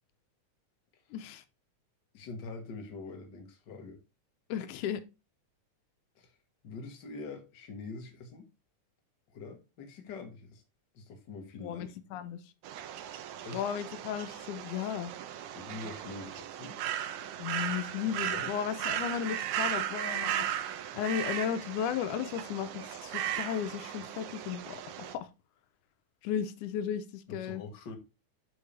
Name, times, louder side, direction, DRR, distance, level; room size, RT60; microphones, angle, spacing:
voice 1, 1.1-1.4 4.5-5.0 11.6-12.4 13.5-15.1 17.4-20.5 20.9-25.3 26.2-27.6, left 9 dB, 85° left, 2.2 m, -35 dB
voice 2, 2.1-4.0 6.2-6.3 6.6-8.5 9.3-10.6 10.9-11.8 13.4-13.6 15.5-16.8 18.2-18.5 27.3-28.0, left 3 dB, 45° left, 1.8 m, -44 dB
sound 1, 12.6-25.2, right 11 dB, 80° right, 2.0 m, -36 dB
8.3 x 4.7 x 3.3 m
omnidirectional pair, 3.5 m